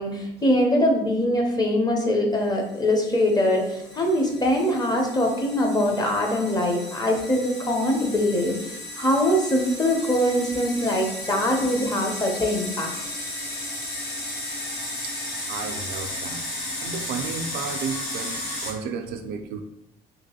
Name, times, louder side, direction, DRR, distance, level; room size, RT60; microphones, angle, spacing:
voice 1, 0.0-8.6 9.0-12.9, left 1 dB, 25° left, 1 dB, 0.7 m, -23 dB
sound 1, 2.6-18.7, left 1 dB, 80° left, 1.4 m, -34 dB
voice 2, 15.5-16.4 16.8-19.6, right 5 dB, 75° right, 6 dB, 0.4 m, -33 dB
3.0 x 2.9 x 2.8 m, 0.82 s
cardioid pair, 110°, 17 cm